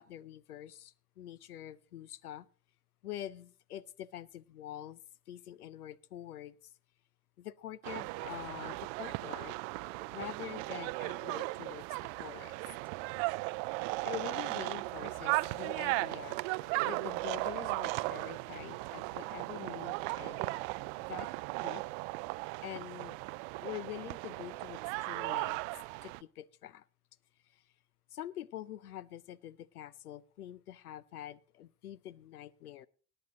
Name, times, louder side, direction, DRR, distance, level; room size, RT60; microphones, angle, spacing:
voice 1, 0.0-2.5 3.0-5.0 5.3-6.6 7.4-9.6 10.1-11.9 12.2-12.6 14.0-16.4 16.8-20.5 21.1-21.3 21.6-21.8 22.6-23.2 23.6-25.6 26.0-26.8 27.5-27.6 28.1-32.9, left 12 dB, 80° left, 0.7 m, -45 dB
sound 1, 7.8-26.2, right 23 dB, 50° right, 0.5 m, -37 dB
18.0 x 8.9 x 3.8 m
figure-of-eight pair, 65°, 45 cm